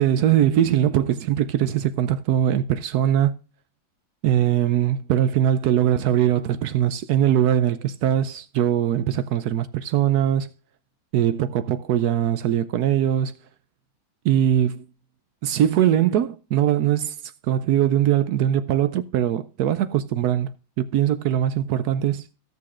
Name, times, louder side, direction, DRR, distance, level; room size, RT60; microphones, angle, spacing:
voice 1, 0.0-3.3 4.2-10.5 11.1-13.3 14.2-14.8 15.4-17.2 17.5-20.5 20.8-22.3, right 10 dB, 70° right, 0.9 m, -21 dB
15.0 x 6.7 x 2.4 m
omnidirectional pair, 2.1 m